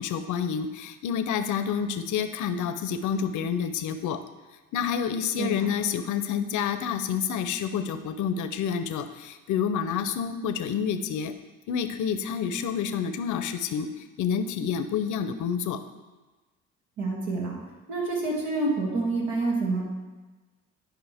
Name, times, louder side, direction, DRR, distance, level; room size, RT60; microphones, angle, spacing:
voice 1, 0.0-4.2 4.7-11.3 11.7-13.9 14.2-15.8, left 7 dB, 75° left, 9 dB, 0.7 m, -28 dB
voice 2, 17.0-17.5 17.9-19.9, right 3 dB, 80° right, -3 dB, 2.5 m, -27 dB
11.0 x 5.1 x 3.5 m, 1.2 s
cardioid pair, 90°, 30 cm